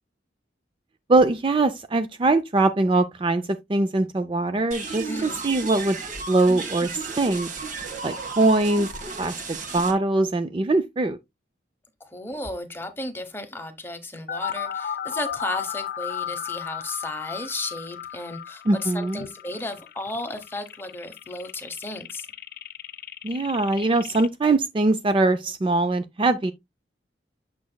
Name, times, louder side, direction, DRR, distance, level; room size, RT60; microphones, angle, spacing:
voice 1, 1.1-6.0 6.3-7.5 8.0-8.9 9.2-11.2 18.7-19.2 23.2-26.5, right 2 dB, 30° right, 0.4 m, -22 dB
sound 1, 4.7-9.9, right 4 dB, 45° right, 1.6 m, -34 dB
voice 2, 5.0-5.4 12.0-22.3, left 2 dB, 10° left, 1.0 m, -34 dB
sound 2, 14.3-24.3, left 9 dB, 50° left, 0.5 m, -35 dB
8.4 x 5.9 x 2.2 m
head